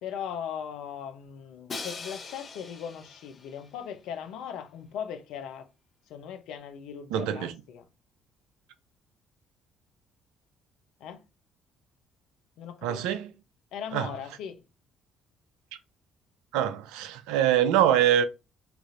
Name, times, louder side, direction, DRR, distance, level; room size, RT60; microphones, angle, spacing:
voice 1, 0.0-5.7 6.1-7.9 11.0-11.2 12.6-13.1 13.7-14.6, left 8 dB, 70° left, 0.5 m, -39 dB
Crash cymbal, 1.7-3.7, left 4 dB, 45° left, 0.9 m, -41 dB
voice 2, 7.1-7.5 12.8-13.3 13.9-14.1 16.5-18.2, right 10 dB, 75° right, 0.4 m, -24 dB
4.5 x 2.5 x 2.5 m
hypercardioid pair, 50°, 0 cm